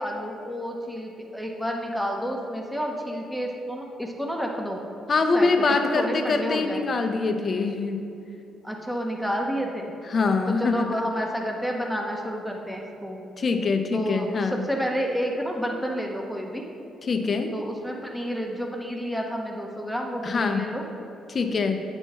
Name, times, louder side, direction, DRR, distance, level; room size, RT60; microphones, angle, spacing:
voice 1, 0.0-4.8 5.3-6.8 8.6-9.9 10.5-13.2 13.9-16.7 17.5-20.8, equal, ahead, 0 dB, 1.1 m, -30 dB
voice 2, 5.1-8.0 10.1-11.0 13.4-14.6 17.0-17.5 20.2-20.6 21.3-21.8, left 4 dB, 40° left, 5 dB, 0.7 m, -24 dB
8.9 x 4.6 x 5.6 m, 2.7 s
cardioid pair, 90°, 0 cm